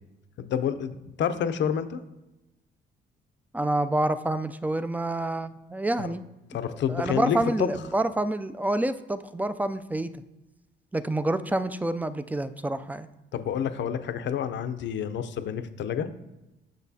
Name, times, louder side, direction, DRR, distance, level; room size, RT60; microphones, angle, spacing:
voice 1, 0.4-2.0 6.0-6.1 6.5-7.7 13.3-16.1, left 8 dB, 65° left, 11 dB, 0.6 m, -29 dB
voice 2, 3.5-6.2 6.7-10.1 10.9-13.1, right 1 dB, 10° right, 12 dB, 0.3 m, -28 dB
8.1 x 6.4 x 2.8 m, 1.0 s
cardioid pair, 90°, 20 cm